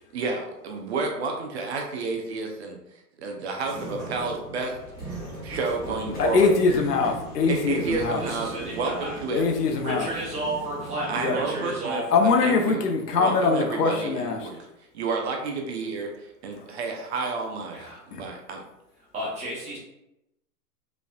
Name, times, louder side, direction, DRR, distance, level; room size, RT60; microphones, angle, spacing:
voice 1, 0.1-2.8 3.2-4.8 5.0-6.5 7.5-9.4 11.1-12.0 12.4-12.8 13.2-14.7 14.9-18.6, right 4 dB, 45° right, 2 dB, 0.7 m, -30 dB
sound 1, 3.6-11.8, right 3 dB, ahead, 1.4 m, -40 dB
Train / Sliding door, 4.4-11.0, equal, 20° left, 1.2 m, -42 dB
voice 2, 6.2-8.2 9.3-10.1 11.2-11.4 12.1-14.5 18.1-18.2, left 4 dB, 75° left, 4 dB, 1.0 m, -23 dB
voice 3, 8.2-9.2 9.8-12.5 17.7-18.0 19.1-19.8, right 1 dB, 15° right, -5 dB, 1.3 m, -33 dB
5.3 x 3.4 x 2.4 m, 0.88 s
hypercardioid pair, 145°, 48 cm